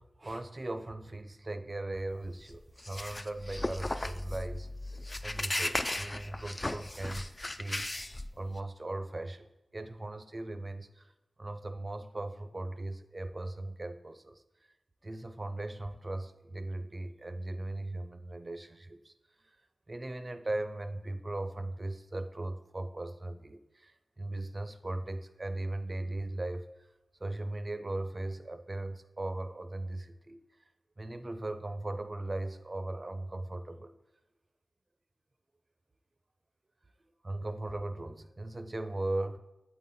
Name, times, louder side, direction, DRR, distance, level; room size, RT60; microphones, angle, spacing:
voice 1, 0.0-4.7 5.2-7.9 8.4-9.5 9.7-11.1 11.4-14.4 15.0-19.1 19.9-26.7 27.2-30.4 31.0-33.9 37.2-39.4, right 2 dB, 40° right, 9 dB, 0.5 m, -38 dB
sound 1, 2.1-8.6, left 1 dB, 25° left, 0.3 m, -36 dB
8.0 x 3.9 x 4.1 m, 1.0 s
cardioid pair, 45°, 0 cm